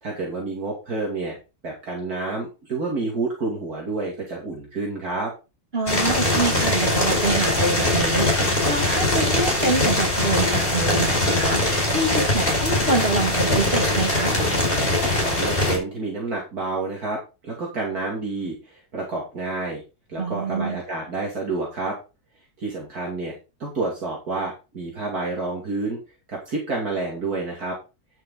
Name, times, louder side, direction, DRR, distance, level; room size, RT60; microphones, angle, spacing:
voice 1, 0.0-1.4 1.6-5.3 15.2-19.8 20.1-22.0 22.6-23.3 23.6-26.0 26.3-27.8, right 3 dB, 60° right, -2 dB, 3.1 m, -29 dB
voice 2, 5.7-14.4 20.2-20.8, right 2 dB, 35° right, 2 dB, 2.9 m, -26 dB
sound 1, 5.9-15.8, left 1 dB, 30° left, 4.8 m, -21 dB
10.0 x 7.6 x 3.9 m, 0.30 s
omnidirectional pair, 1.8 m